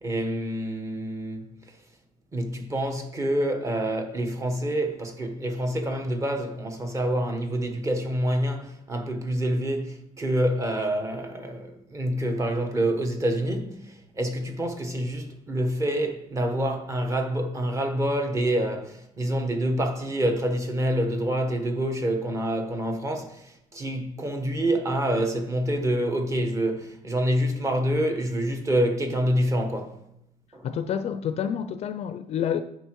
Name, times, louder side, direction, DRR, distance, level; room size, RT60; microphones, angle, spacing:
voice 1, 0.0-1.4 2.3-13.8 14.1-30.0 30.5-30.6, right 1 dB, 20° right, 1.3 m, -27 dB
voice 2, 30.6-32.6, left 8 dB, 40° left, 0.5 m, -28 dB
10.0 x 5.9 x 4.7 m
cardioid pair, 170°, 16 cm